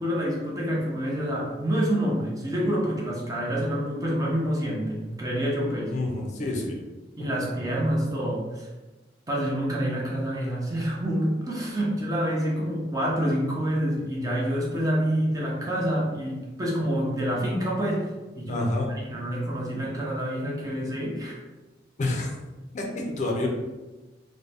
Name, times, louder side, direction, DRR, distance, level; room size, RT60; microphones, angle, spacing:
voice 1, 0.0-5.9 7.2-8.7 9.3-18.1 18.3-21.4, equal, 20° right, -3 dB, 0.5 m, -27 dB
voice 2, 5.9-6.8 18.5-19.0 22.0-22.3 22.7-23.5, left 2 dB, 40° left, 0 dB, 0.4 m, -28 dB
2.6 x 2.1 x 3.3 m, 1.2 s
head